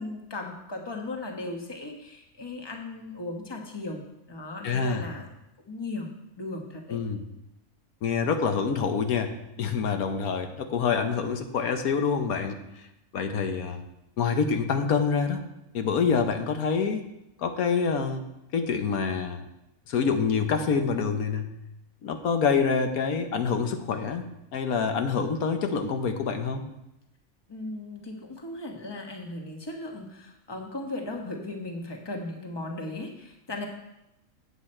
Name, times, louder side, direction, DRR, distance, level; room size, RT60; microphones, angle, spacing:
voice 1, 0.0-5.3 5.7-6.1 6.4-7.0 27.5-33.7, left 2 dB, 20° left, 1 dB, 1.2 m, -37 dB
voice 2, 4.6-5.0 6.9-7.2 8.0-12.6 13.1-13.8 14.2-15.4 15.7-17.0 17.4-18.2 18.5-19.4 19.9-21.5 22.0-26.6, left 5 dB, 85° left, 6 dB, 1.3 m, -26 dB
8.3 x 8.1 x 4.4 m, 0.88 s
omnidirectional pair, 1.5 m